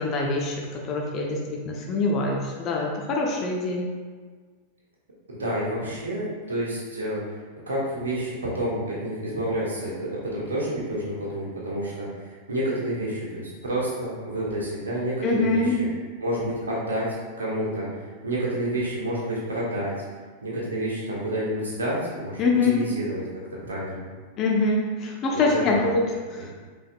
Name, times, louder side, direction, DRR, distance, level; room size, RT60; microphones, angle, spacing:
voice 1, 0.0-3.9 15.2-15.8 22.4-22.9 24.4-26.5, left 3 dB, 35° left, -1 dB, 0.6 m, -24 dB
voice 2, 5.3-7.2 7.7-15.9 16.2-17.1 17.4-19.9 20.4-23.2 23.6-24.1 25.3-25.6, right 1 dB, 70° right, -6 dB, 1.3 m, -29 dB
5.5 x 3.5 x 2.2 m, 1.5 s
figure-of-eight pair, 90°, 0 cm